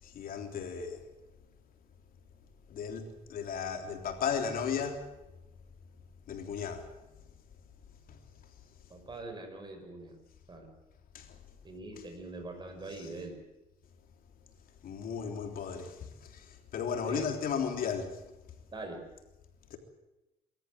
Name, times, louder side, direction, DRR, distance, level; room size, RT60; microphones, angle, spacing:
voice 1, 0.0-1.0 2.7-5.1 6.3-6.9 8.1-8.2 11.1-11.4 14.8-18.2 19.7-19.8, left 6 dB, 60° left, 3.5 m, -35 dB
voice 2, 8.9-10.2 10.5-10.7 11.6-13.4 17.0-17.3 18.7-19.0, right 2 dB, 25° right, 5.7 m, -43 dB
24.5 x 13.5 x 9.5 m
cardioid pair, 110°, 17 cm